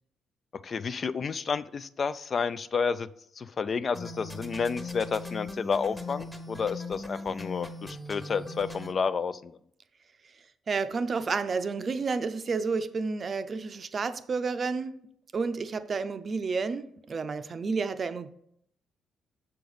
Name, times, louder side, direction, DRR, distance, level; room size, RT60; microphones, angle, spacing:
voice 1, 0.6-3.1 3.4-9.5, left 5 dB, 45° left, 14 dB, 0.3 m, -30 dB
sound 1, 3.9-8.9, left 2 dB, 10° left, 1.0 m, -40 dB
voice 2, 10.7-14.9 15.3-18.3, right 4 dB, 40° right, 11 dB, 0.5 m, -30 dB
6.8 x 4.0 x 4.9 m, 0.69 s
cardioid pair, 90°, 0 cm